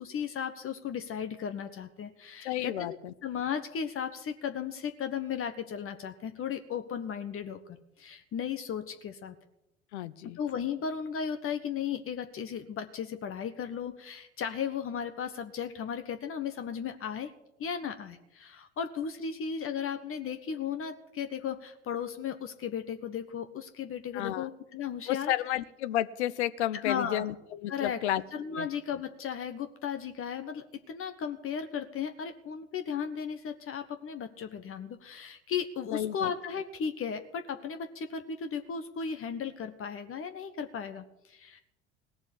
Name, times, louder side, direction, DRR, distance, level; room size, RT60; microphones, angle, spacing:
voice 1, 0.0-3.0 3.2-9.4 10.4-17.3 17.6-25.3 26.8-27.3 27.7-28.0 28.3-41.6, left 7 dB, 40° left, 9 dB, 1.3 m, -35 dB
voice 2, 2.4-3.1 9.9-10.4 24.1-24.5 25.1-28.2 28.6-28.7 35.9-36.3, left 12 dB, 70° left, 16 dB, 0.8 m, -32 dB
18.0 x 7.1 x 10.0 m, 0.84 s
hypercardioid pair, 70°, 35 cm